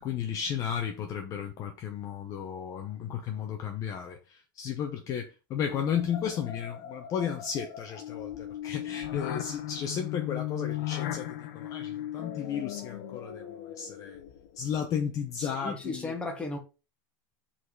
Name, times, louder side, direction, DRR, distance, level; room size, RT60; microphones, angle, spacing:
voice 1, 0.0-13.4 13.8-14.2 14.6-16.1, left 8 dB, 30° left, 0.9 m, -34 dB
sound 1, 5.6-14.6, left 12 dB, 65° left, 1.1 m, -37 dB
voice 2, 15.4-16.6, left 2 dB, 10° left, 1.6 m, -35 dB
5.4 x 4.2 x 4.7 m
supercardioid pair, 160°, 11 cm